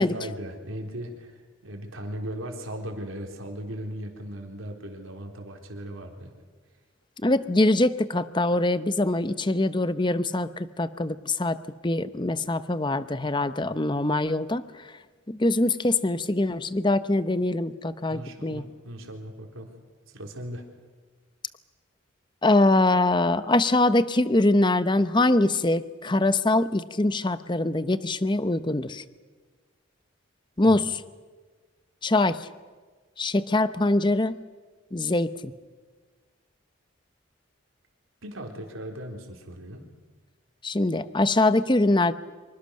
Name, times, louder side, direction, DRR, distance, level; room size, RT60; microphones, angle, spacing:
voice 1, 0.0-6.3 18.1-19.7 20.1-20.6 30.6-30.8 38.2-39.8, equal, 75° right, 2 dB, 4.0 m, -38 dB
voice 2, 7.2-11.6 11.8-14.9 15.3-18.6 22.4-29.0 30.6-31.0 32.0-32.5 33.2-34.3 34.9-35.5 40.6-42.1, left 2 dB, 20° left, 13 dB, 0.8 m, -23 dB
26.0 x 23.5 x 6.5 m, 1.4 s
head